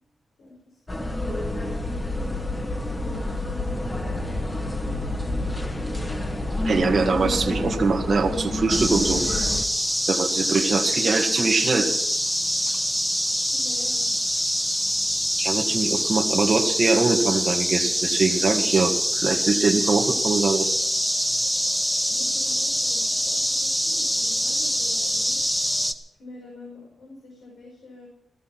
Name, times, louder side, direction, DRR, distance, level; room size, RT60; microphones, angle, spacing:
voice 1, 0.4-1.1 1.9-5.6 13.5-14.1 22.1-25.4 26.2-28.1, left 2 dB, 90° left, -1 dB, 5.4 m, -46 dB
sound 1, 0.9-9.7, left 1 dB, 25° left, 2.1 m, -28 dB
voice 2, 6.6-9.5 10.1-11.9 15.4-20.8, right 4 dB, 55° right, 2 dB, 1.9 m, -23 dB
sound 2, 8.7-25.9, equal, 5° left, 1.8 m, -24 dB
16.5 x 14.5 x 6.0 m, 0.79 s
cardioid pair, 70°, 0 cm